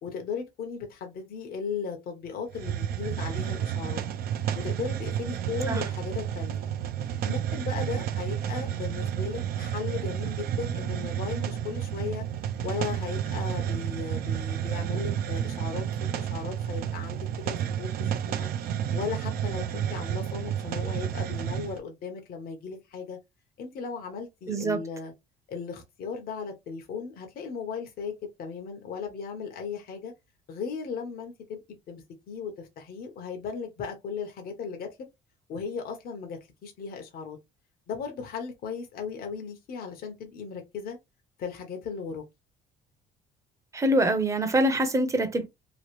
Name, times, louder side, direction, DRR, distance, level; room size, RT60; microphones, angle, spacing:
voice 1, 0.0-4.0 4.5-6.6 7.2-12.2 12.6-15.9 16.1-18.5 18.9-23.2 23.6-25.1 25.5-28.1 28.4-30.1 30.5-31.6 31.9-35.0 35.5-37.4 37.9-41.0 41.4-42.2, left 5 dB, 60° left, 0.9 m, -36 dB
Hiss, 2.5-21.8, right 9 dB, 65° right, 0.5 m, -31 dB
voice 2, 24.5-24.8 43.7-45.5, right 1 dB, 20° right, 0.7 m, -24 dB
3.0 x 2.5 x 3.0 m
cardioid pair, 110°, 17 cm